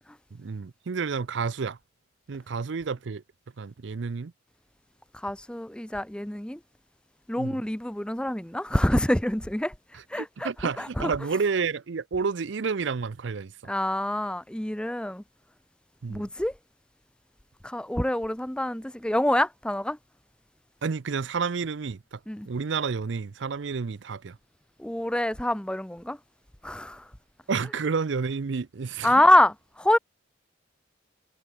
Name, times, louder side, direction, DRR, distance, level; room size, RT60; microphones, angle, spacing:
voice 1, 0.3-1.8 2.3-3.2 3.6-4.3 7.3-7.6 9.9-13.5 16.0-16.3 20.8-22.2 22.4-24.4 27.5-29.2, right 5 dB, 65° right, 0.5 m, -30 dB
voice 2, 5.2-6.6 7.3-9.7 10.1-10.5 10.8-11.1 13.7-15.2 16.1-16.5 17.6-20.0 22.3-22.5 24.8-26.2 26.6-27.0 29.0-30.0, left 1 dB, 5° left, 0.6 m, -25 dB
head